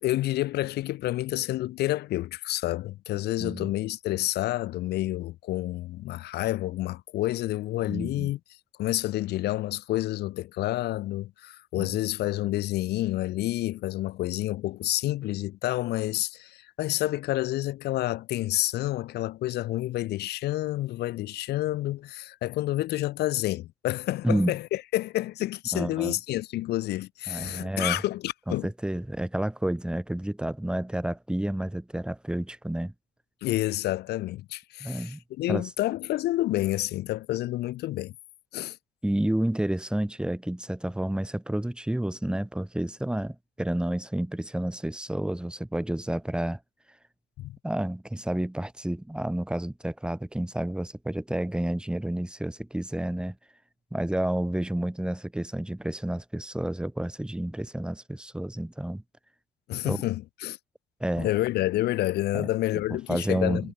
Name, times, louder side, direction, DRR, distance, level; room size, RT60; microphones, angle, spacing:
voice 1, 0.0-8.4 8.8-28.7 33.4-38.1 38.5-38.8 47.4-47.6 59.7-60.6 61.2-63.7, left 16 dB, 75° left, 2.1 m, -29 dB
voice 2, 3.4-3.7 7.9-8.3 11.7-11.9 24.2-24.5 25.7-26.2 27.3-28.0 28.5-32.9 34.8-35.2 35.5-35.7 39.0-46.6 47.6-53.4 53.9-59.0 59.8-60.0 61.0-61.3 62.3-63.7, right 1 dB, 5° right, 3.4 m, -30 dB
cardioid pair, 110°, 17 cm